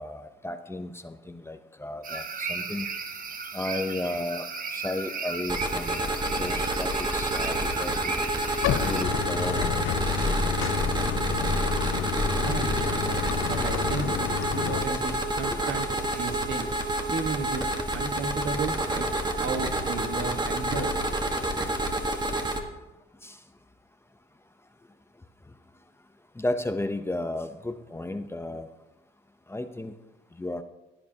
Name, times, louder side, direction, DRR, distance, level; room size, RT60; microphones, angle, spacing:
voice 1, 0.0-2.9 3.5-4.4 4.7-6.0 6.4-8.2 8.8-9.9 14.3-14.5 15.0-15.2 15.5-15.6 18.9-19.1 23.2-23.3 26.4-28.7 29.5-29.9 30.4-30.6, left 1 dB, 10° left, 8 dB, 0.7 m, -33 dB
sound 1, 2.0-9.0, right 5 dB, 45° right, 1.0 m, -35 dB
sound 2, 5.5-22.6, right 1 dB, 20° right, 1.4 m, -28 dB
Bathtub (filling or washing), 8.6-14.9, left 13 dB, 85° left, 0.5 m, -30 dB
voice 2, 12.4-13.2 13.5-15.9 16.1-17.6 17.9-19.1 19.4-21.0, right 4 dB, 75° right, 5 dB, 1.5 m, -34 dB
16.5 x 10.0 x 2.9 m, 0.99 s
cardioid pair, 90°, 20 cm